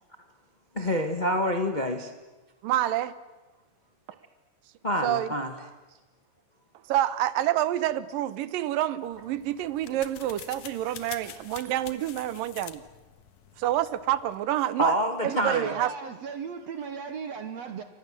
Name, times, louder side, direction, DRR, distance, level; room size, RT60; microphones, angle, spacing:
voice 1, 0.7-2.1 4.8-5.5 14.8-15.8, equal, 35° left, 0.6 m, -27 dB
voice 2, 2.6-3.1 5.0-5.3 6.9-12.8 13.6-14.9 15.2-15.9, right 13 dB, 80° right, 2.7 m, -27 dB
sound 1, 9.0-14.4, left 10 dB, 65° left, 2.5 m, -47 dB
voice 3, 15.3-17.8, right 6 dB, 60° right, 2.1 m, -37 dB
29.0 x 25.5 x 7.7 m
omnidirectional pair, 4.0 m